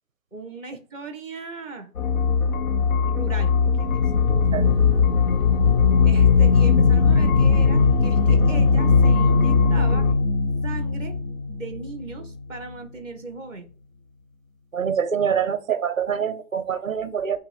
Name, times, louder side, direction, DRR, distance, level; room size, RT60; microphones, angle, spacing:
voice 1, 0.3-1.9 3.1-4.0 6.0-10.2 10.6-11.2 11.5-13.7, right 4 dB, 10° left, 6 dB, 0.8 m, -37 dB
sound 1, 2.0-10.1, left 5 dB, 75° left, 1.5 m, -22 dB
sound 2, 3.7-12.4, left 4 dB, 50° left, 0.5 m, -20 dB
voice 2, 14.7-17.4, right 7 dB, 25° right, 12 dB, 0.6 m, -25 dB
8.3 x 3.3 x 5.3 m, 0.42 s
hypercardioid pair, 170°, 44 cm